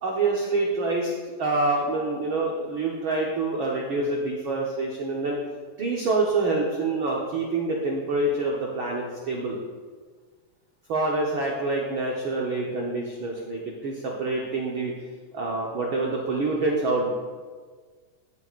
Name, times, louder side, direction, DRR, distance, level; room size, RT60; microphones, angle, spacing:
voice 1, 0.0-1.1 1.4-5.4 5.8-9.6 10.9-14.9 15.3-17.1, right 3 dB, 75° right, -2 dB, 1.1 m, -26 dB
15.0 x 8.4 x 2.5 m, 1.5 s
omnidirectional pair, 3.7 m